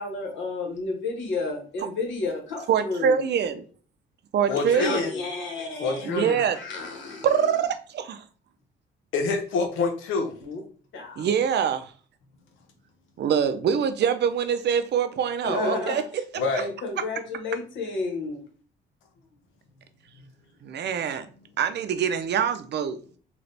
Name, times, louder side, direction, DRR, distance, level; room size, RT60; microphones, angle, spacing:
voice 1, 0.0-3.3 4.5-7.3 10.4-10.6 10.9-11.3 15.4-16.0 16.6-18.4, left 3 dB, 70° left, 2 dB, 1.3 m, -32 dB
voice 2, 2.7-3.6 4.3-5.1 6.0-6.6 7.2-8.2 11.2-11.9 13.2-16.6 20.6-21.3 21.6-23.2, right 7 dB, 60° right, 9 dB, 0.5 m, -25 dB
voice 3, 4.5-5.1 5.8-6.4 9.1-10.3 16.3-16.7, left 4 dB, 90° left, 4 dB, 0.8 m, -26 dB
4.0 x 2.3 x 3.3 m, 0.40 s
cardioid pair, 90°, 20 cm